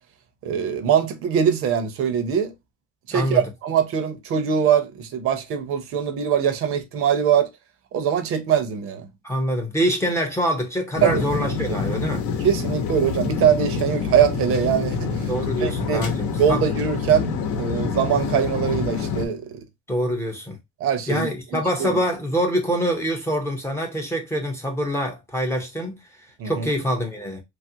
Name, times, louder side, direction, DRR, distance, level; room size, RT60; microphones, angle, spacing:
voice 1, 0.4-2.5 3.1-7.5 7.9-9.1 11.0-11.2 12.4-15.3 15.6-16.1 16.4-19.4 20.8-21.9 26.4-26.7, right 8 dB, 50° right, 0.6 m, -22 dB
voice 2, 3.1-3.4 9.2-12.2 15.3-16.6 19.9-20.6 21.1-26.0 26.4-27.4, equal, 10° left, 0.5 m, -25 dB
sound 1, 10.9-19.3, left 5 dB, 80° left, 0.8 m, -26 dB
3.2 x 2.4 x 2.6 m
cardioid pair, 165°, 30 cm